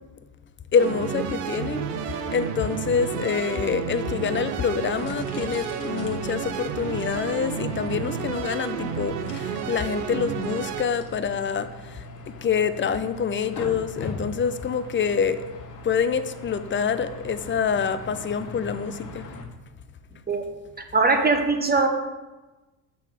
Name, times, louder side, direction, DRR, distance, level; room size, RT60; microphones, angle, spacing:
voice 1, 0.7-12.0 12.4-15.4 15.8-19.3, left 6 dB, 25° left, 12 dB, 0.6 m, -26 dB
sound 1, 0.8-10.9, right 7 dB, 85° right, 0.8 m, -31 dB
sound 2, 2.5-19.4, left 2 dB, 45° left, 1.5 m, -41 dB
voice 2, 20.9-21.9, right 3 dB, 20° right, 6 dB, 1.2 m, -21 dB
6.5 x 5.3 x 6.4 m, 1.2 s
hypercardioid pair, 70°, 46 cm